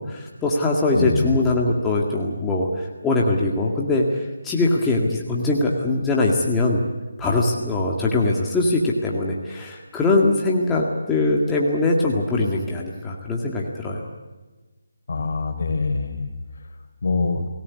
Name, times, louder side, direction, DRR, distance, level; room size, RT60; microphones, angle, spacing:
voice 1, 0.0-6.8 7.2-14.1, left 2 dB, 10° left, -3 dB, 2.0 m, -22 dB
voice 2, 0.9-1.4 15.1-16.3 17.0-17.4, left 3 dB, 60° left, 7 dB, 4.0 m, -24 dB
24.0 x 18.0 x 8.5 m, 1.2 s
figure-of-eight pair, 165°, 0 cm